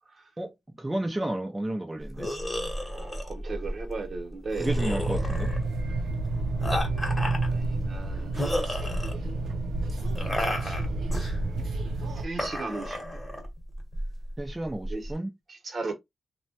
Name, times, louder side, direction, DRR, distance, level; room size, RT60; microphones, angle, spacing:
voice 1, 0.4-2.3 4.6-5.6 14.4-15.3, right 1 dB, 15° right, 0.6 m, -32 dB
sound 1, 2.0-15.1, equal, 15° left, 1.1 m, -33 dB
voice 2, 2.9-4.7 7.5-8.3 12.1-13.0 14.9-15.1 15.5-15.9, right 3 dB, 50° right, 1.0 m, -36 dB
sound 2, 4.6-12.2, right 2 dB, 85° right, 0.5 m, -30 dB
3.0 x 2.2 x 2.8 m
cardioid pair, 95°, 0 cm